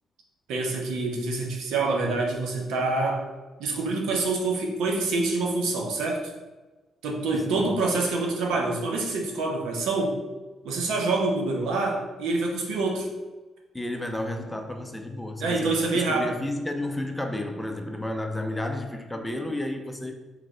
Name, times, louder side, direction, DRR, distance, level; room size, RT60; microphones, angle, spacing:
voice 1, 0.5-3.2 3.6-6.2 7.0-10.1 10.6-13.1 15.4-16.4, right 3 dB, 85° right, 1 dB, 0.7 m, -26 dB
voice 2, 13.7-20.1, left 1 dB, 10° left, 4 dB, 0.5 m, -32 dB
3.3 x 3.2 x 3.7 m, 1.2 s
cardioid pair, 90°, 0 cm